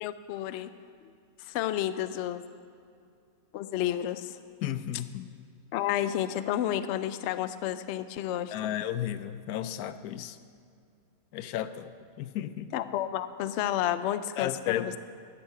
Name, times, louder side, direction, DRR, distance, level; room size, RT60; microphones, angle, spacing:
voice 1, 0.0-0.7 1.4-2.4 3.5-4.4 5.7-8.5 12.7-14.9, left 11 dB, 65° left, 12 dB, 0.7 m, -31 dB
voice 2, 4.6-5.2 8.5-10.4 11.3-11.9 12.2-12.7 14.4-15.0, left 11 dB, 85° left, 12 dB, 1.1 m, -33 dB
13.0 x 8.4 x 6.7 m, 2.4 s
omnidirectional pair, 1.5 m